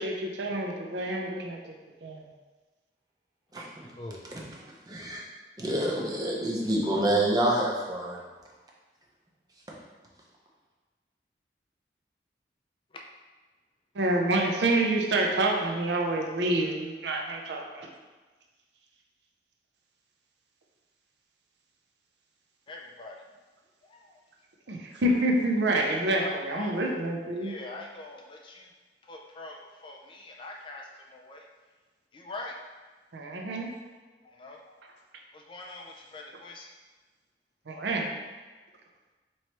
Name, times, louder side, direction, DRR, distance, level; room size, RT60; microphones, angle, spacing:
voice 1, 0.0-1.7 2.0-2.3 13.9-17.9 24.7-27.5 33.1-33.7 37.7-38.1, right 1 dB, 80° right, 1 dB, 0.5 m, -27 dB
voice 2, 4.0-4.3 22.7-23.2 23.9-24.2 25.7-25.9 26.1-26.8 27.4-28.7 29.0-31.4 32.1-32.5 34.2-34.8 35.3-36.7, left 2 dB, 30° left, 1 dB, 0.3 m, -43 dB
voice 3, 4.9-5.2 5.6-8.2, right 1 dB, 20° right, -3 dB, 0.6 m, -27 dB
3.1 x 2.9 x 4.3 m, 1.3 s
head